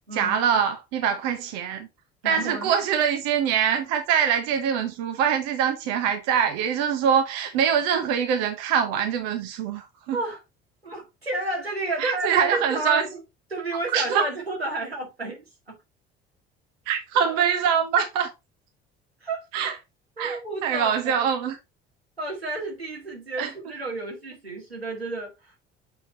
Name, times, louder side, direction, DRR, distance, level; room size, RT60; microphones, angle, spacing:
voice 1, 0.1-1.9 2.2-10.2 12.0-13.1 13.9-14.3 16.9-18.3 19.5-19.8 20.2-21.6 23.4-23.5, right 8 dB, 60° right, 1.0 m, -24 dB
voice 2, 2.2-2.7 10.1-10.4 10.8-13.2 13.5-15.8 19.2-19.4 20.2-21.3 22.2-25.6, right 2 dB, 90° right, 1.8 m, -31 dB
6.8 x 4.4 x 4.1 m
figure-of-eight pair, 55°, 30 cm